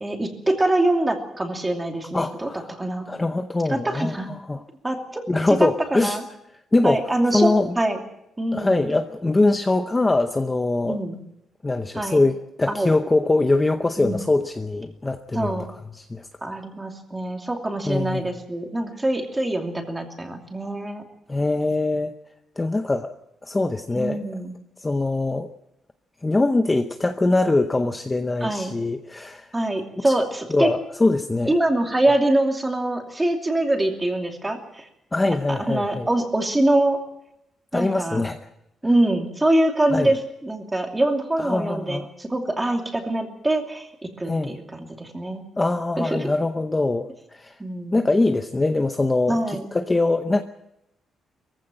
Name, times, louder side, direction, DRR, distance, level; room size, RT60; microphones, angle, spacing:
voice 1, 0.0-3.1 3.7-4.3 4.8-5.2 5.9-6.2 6.8-8.0 8.4-8.9 10.9-11.2 12.0-12.2 12.7-12.9 14.0-14.2 15.3-15.6 16.4-21.0 24.0-24.5 28.4-28.7 29.5-30.7 31.5-34.9 35.5-37.0 37.7-38.2 38.8-45.4 46.0-46.3 47.6-48.1 49.3-49.7, right 1 dB, 10° right, 3 dB, 2.7 m, -24 dB
voice 2, 2.1-2.7 3.1-4.1 4.5-4.6 5.3-6.2 6.7-7.0 7.3-7.7 8.5-11.0 11.6-15.6 15.9-16.3 17.8-18.3 21.3-22.1 22.6-23.1 23.4-24.2 24.8-25.5 26.2-29.5 30.0-30.1 30.5-31.6 35.1-36.1 37.7-38.4 39.9-40.1 41.4-42.1 44.3-44.6 45.6-47.6 47.9-50.4, left 2 dB, 15° left, 7 dB, 0.8 m, -22 dB
22.5 x 15.5 x 8.9 m, 0.82 s
wide cardioid pair, 170°, 0 cm